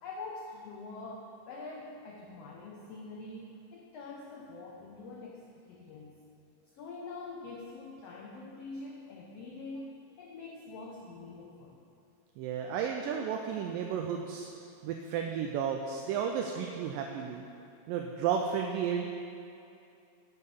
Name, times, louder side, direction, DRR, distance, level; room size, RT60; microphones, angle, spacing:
voice 1, 0.0-6.3 6.7-11.8, left 3 dB, 80° left, -1 dB, 1.4 m, -45 dB
voice 2, 12.4-14.5 14.8-17.5 17.9-19.1, right 7 dB, 85° right, 3 dB, 2.2 m, -33 dB
9.8 x 6.6 x 6.9 m, 2.6 s
omnidirectional pair, 3.9 m